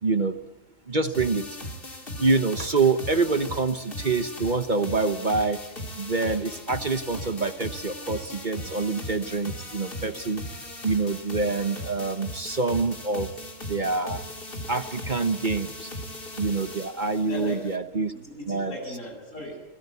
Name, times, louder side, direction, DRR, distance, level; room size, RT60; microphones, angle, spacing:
voice 1, 0.0-0.4 0.9-1.5 2.2-5.6 6.0-10.4 10.8-13.3 13.7-14.2 14.7-15.9 16.4-18.1 18.5-18.8, right 3 dB, 40° right, 10 dB, 1.2 m, -26 dB
sound 1, 1.1-17.8, left 1 dB, 45° left, 3.3 m, -38 dB
voice 2, 17.3-17.7 18.1-19.6, left 1 dB, 75° left, 2 dB, 7.8 m, -39 dB
27.0 x 20.0 x 8.3 m, 0.91 s
omnidirectional pair, 1.3 m